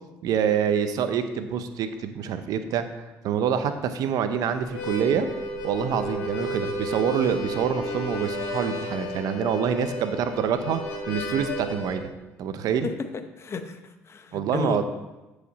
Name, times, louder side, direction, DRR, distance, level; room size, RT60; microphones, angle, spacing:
voice 1, 0.2-5.3 5.6-10.8 11.1-12.1 12.4-12.9 14.3-14.8, right 8 dB, 70° right, 10 dB, 0.6 m, -26 dB
Harmonica, 4.6-12.0, equal, 85° left, 1.4 m, -32 dB
voice 2, 13.4-14.8, left 4 dB, 40° left, 8 dB, 0.8 m, -33 dB
8.3 x 4.9 x 4.0 m, 1.1 s
supercardioid pair, 65°, 7 cm